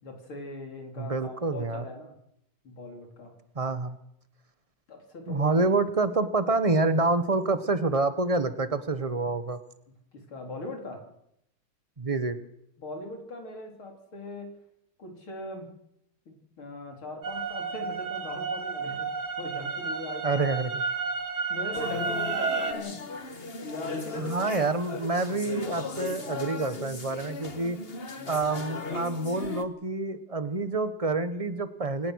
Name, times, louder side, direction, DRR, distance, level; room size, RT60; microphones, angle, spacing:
voice 1, 0.0-2.1 2.6-3.3 4.9-5.7 10.1-11.0 12.8-14.5 15.0-15.7 16.3-20.5 21.5-23.0 23.6-24.5 28.2-28.5, left 2 dB, 90° left, 2 dB, 4.6 m, -40 dB
voice 2, 1.0-1.8 3.5-4.0 5.3-9.6 12.0-12.4 20.2-20.8 24.2-27.8 28.3-32.1, right 3 dB, 25° right, 11 dB, 0.9 m, -27 dB
sound 1, 17.2-22.7, right 5 dB, 85° right, 3.6 m, -32 dB
sound 2, 21.7-29.6, left 3 dB, 30° left, 1.5 m, -37 dB
28.0 x 18.0 x 6.5 m, 0.77 s
omnidirectional pair, 2.2 m